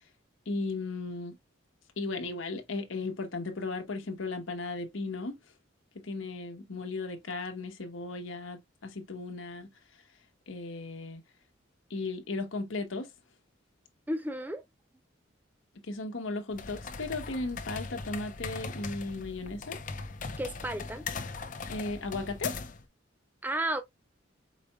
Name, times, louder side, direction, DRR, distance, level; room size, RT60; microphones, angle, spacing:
voice 1, 0.5-1.3 2.0-5.4 5.9-9.7 10.5-11.2 11.9-13.1 15.9-19.8 21.7-22.5, left 3 dB, 90° left, 1.0 m, -36 dB
voice 2, 14.1-14.6 20.4-21.0 23.4-23.8, right 1 dB, 10° right, 0.5 m, -32 dB
sound 1, 16.5-22.8, left 4 dB, 40° left, 0.7 m, -39 dB
4.9 x 4.1 x 2.2 m
head